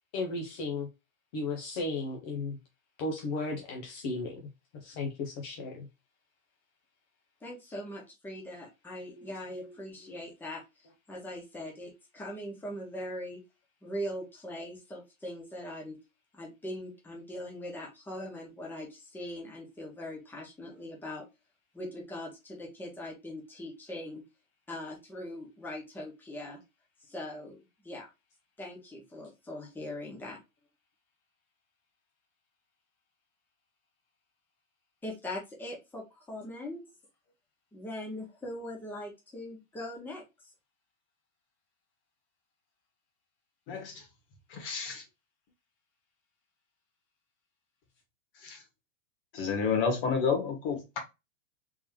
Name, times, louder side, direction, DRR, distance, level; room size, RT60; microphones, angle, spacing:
voice 1, 0.1-0.9 1.3-2.6 3.0-4.4 4.7-5.9 9.2-9.3 10.1-10.2, left 3 dB, 20° left, 0.3 m, -35 dB
voice 2, 7.4-13.4 13.8-16.0 16.3-21.3 21.7-24.2 24.7-26.6 27.0-28.1 28.6-30.4 35.0-36.8 37.7-40.5, left 1 dB, 5° left, 1.1 m, -41 dB
voice 3, 43.7-44.1 44.5-45.0 48.4-48.6 49.3-51.0, left 5 dB, 45° left, 1.6 m, -30 dB
3.7 x 2.9 x 2.7 m
supercardioid pair, 150°, 39 cm